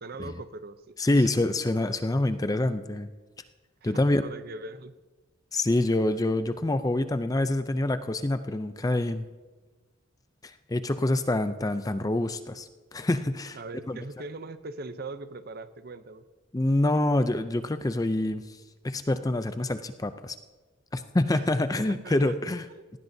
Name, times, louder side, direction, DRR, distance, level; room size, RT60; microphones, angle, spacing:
voice 1, 0.0-1.5 3.8-4.9 13.5-16.2 21.3-21.4 22.0-22.8, right 3 dB, 45° right, 12 dB, 0.6 m, -41 dB
voice 2, 1.0-3.1 3.8-4.2 5.5-9.2 10.4-13.6 13.9-14.0 16.5-18.6 18.8-20.4 20.9-22.7, left 1 dB, 15° left, 10 dB, 0.4 m, -26 dB
18.5 x 16.5 x 2.7 m, 1.3 s
head